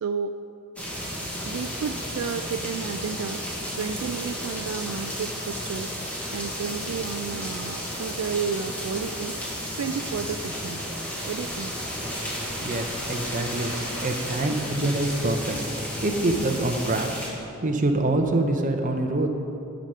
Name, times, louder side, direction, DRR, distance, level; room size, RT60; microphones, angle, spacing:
voice 1, 0.0-0.4 1.4-3.4 3.8-5.9 6.3-9.4 9.7-10.9 11.3-11.8, right 6 dB, 70° right, 8 dB, 0.3 m, -32 dB
sound 1, 0.8-17.3, equal, 5° left, 1.1 m, -33 dB
voice 2, 12.6-13.7 14.0-15.6 16.0-17.1 17.6-19.3, right 2 dB, 35° right, 4 dB, 0.6 m, -25 dB
10.5 x 5.2 x 5.6 m, 2.7 s
head